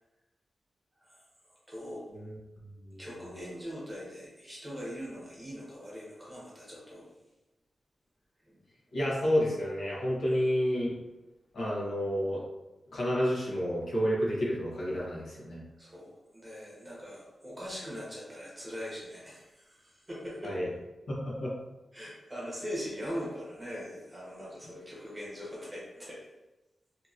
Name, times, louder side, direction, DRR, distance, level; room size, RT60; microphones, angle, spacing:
voice 1, 1.7-2.0 3.0-7.0 8.5-8.6 10.3-10.5 15.8-20.6 21.9-26.2, equal, 15° right, -6 dB, 0.9 m, -41 dB
voice 2, 8.9-10.9 11.5-12.4 12.9-15.6 20.4-20.7 21.2-21.5, equal, 80° left, -7 dB, 1.0 m, -30 dB
2.8 x 2.7 x 2.5 m, 1.0 s
wide cardioid pair, 145°, 0 cm